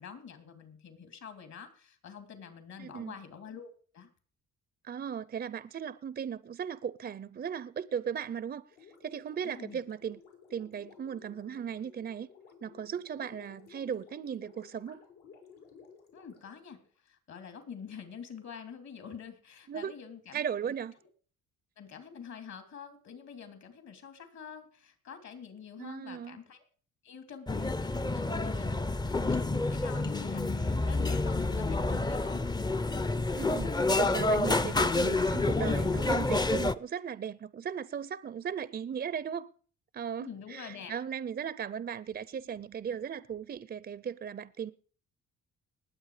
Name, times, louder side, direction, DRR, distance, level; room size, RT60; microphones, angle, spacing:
voice 1, 0.0-4.1 9.4-9.8 16.1-20.4 21.8-26.6 27.0-32.5 40.2-40.9, left 6 dB, 65° left, 3.3 m, -47 dB
voice 2, 2.8-3.2 4.8-10.2 10.5-12.3 12.6-15.0 19.7-19.9 20.3-20.9 25.8-26.4 33.3-39.5 39.9-44.7, right 8 dB, 35° right, 0.5 m, -37 dB
Gurgling, 8.7-17.1, left 6 dB, 85° left, 5.3 m, -56 dB
sound 1, 27.5-36.8, left 2 dB, 15° left, 0.6 m, -29 dB
20.0 x 7.9 x 4.9 m
cardioid pair, 90°, 30 cm